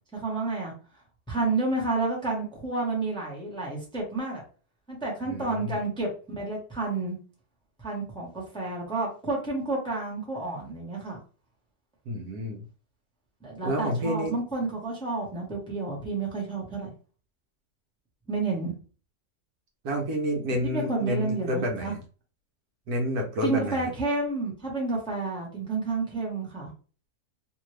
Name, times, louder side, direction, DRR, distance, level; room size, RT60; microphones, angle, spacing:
voice 1, 0.1-0.7 1.3-4.4 4.9-7.2 7.8-11.2 13.4-16.9 18.3-18.7 20.6-21.9 23.4-26.7, right 3 dB, 5° left, -2 dB, 0.8 m, -30 dB
voice 2, 5.3-5.8 12.1-12.6 13.6-14.3 19.8-22.0 22.9-23.9, equal, 70° right, 2 dB, 1.2 m, -29 dB
2.9 x 2.6 x 3.1 m, 0.38 s
omnidirectional pair, 1.8 m